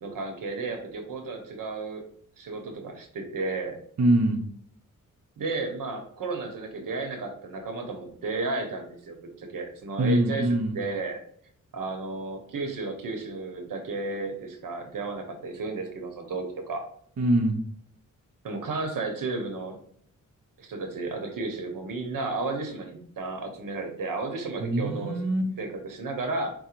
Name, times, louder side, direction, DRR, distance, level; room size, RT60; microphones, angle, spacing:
voice 1, 0.0-2.0 2.4-3.8 5.4-10.5 10.7-11.2 11.7-16.8 18.4-19.8 20.6-25.1 25.6-26.5, right 3 dB, 90° right, 4 dB, 0.9 m, -33 dB
voice 2, 4.0-4.4 10.0-10.8 17.2-17.6 24.6-25.5, right 1 dB, 55° right, 3 dB, 0.8 m, -23 dB
4.9 x 2.1 x 4.4 m, 0.63 s
cardioid pair, 75°, 32 cm